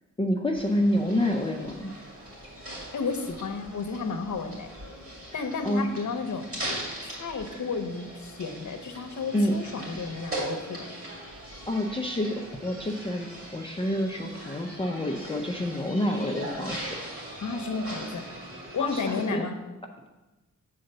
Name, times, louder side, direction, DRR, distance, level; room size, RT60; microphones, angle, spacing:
voice 1, 0.2-1.9 5.3-5.9 9.3-9.6 11.7-17.0 18.8-19.4, left 1 dB, 15° left, 1 dB, 0.5 m, -28 dB
sound 1, 0.5-19.3, right 1 dB, 45° right, 2.5 m, -40 dB
voice 2, 2.9-4.7 5.3-6.5 7.0-10.9 17.4-18.3 18.7-19.6, left 4 dB, 70° left, 7 dB, 0.8 m, -32 dB
7.9 x 3.9 x 6.6 m, 1.1 s
wide cardioid pair, 125°, 31 cm